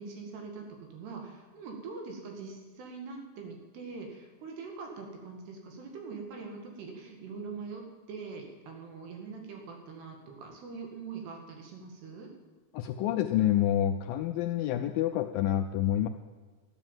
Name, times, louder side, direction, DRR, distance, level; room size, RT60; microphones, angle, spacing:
voice 1, 0.0-12.3, right 4 dB, 85° right, 2 dB, 4.2 m, -43 dB
voice 2, 12.7-16.1, left 11 dB, 85° left, 6 dB, 2.0 m, -28 dB
13.5 x 9.9 x 7.3 m, 1.5 s
omnidirectional pair, 4.6 m